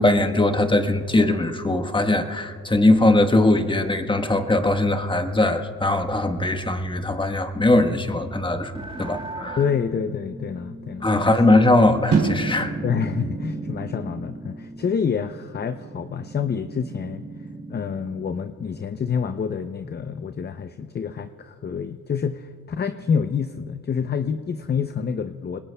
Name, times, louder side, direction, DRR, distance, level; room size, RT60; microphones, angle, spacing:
voice 1, 0.0-8.7 9.0-9.6 11.0-12.7, left 2 dB, 15° left, 6 dB, 1.2 m, -20 dB
sound 1, 8.7-15.1, right 2 dB, 15° right, 1.8 m, -40 dB
voice 2, 9.6-11.3 12.8-17.2 17.7-25.6, left 6 dB, 30° left, 10 dB, 0.6 m, -27 dB
sound 2, 12.1-18.3, right 4 dB, 70° right, 2.7 m, -31 dB
27.0 x 21.0 x 2.2 m, 2.1 s
cardioid pair, 85°, 33 cm